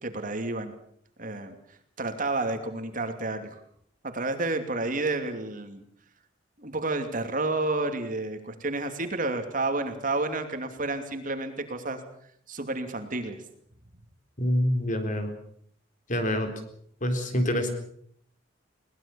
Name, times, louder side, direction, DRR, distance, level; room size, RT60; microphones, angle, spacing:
voice 1, 0.0-0.7 1.2-1.6 2.0-3.6 4.0-5.8 6.6-12.0 12.5-13.4, right 2 dB, 45° right, 7 dB, 2.8 m, -30 dB
voice 2, 14.4-15.3 16.1-16.5 17.0-17.7, equal, 45° left, 6 dB, 3.9 m, -26 dB
22.0 x 19.5 x 7.0 m, 0.66 s
head